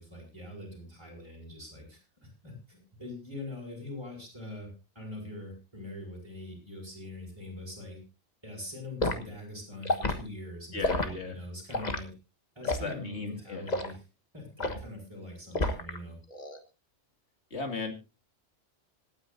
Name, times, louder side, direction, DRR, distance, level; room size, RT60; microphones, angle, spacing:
voice 1, 0.0-4.7 4.9-8.0 8.4-12.1 12.5-14.0 14.3-16.2, left 1 dB, 20° right, -2 dB, 6.4 m, -43 dB
Liquid, 9.0-9.2 9.8-10.2 10.8-11.1 11.7-12.0 12.6-12.9 13.7-13.9 14.6-14.9 15.5-16.0 16.3-16.6, left 2 dB, 40° left, 1.5 m, -29 dB
voice 2, 10.7-11.4 12.8-13.7 17.5-17.9, left 3 dB, 70° left, 5 dB, 2.7 m, -36 dB
26.0 x 9.4 x 2.7 m, 0.29 s
omnidirectional pair, 1.2 m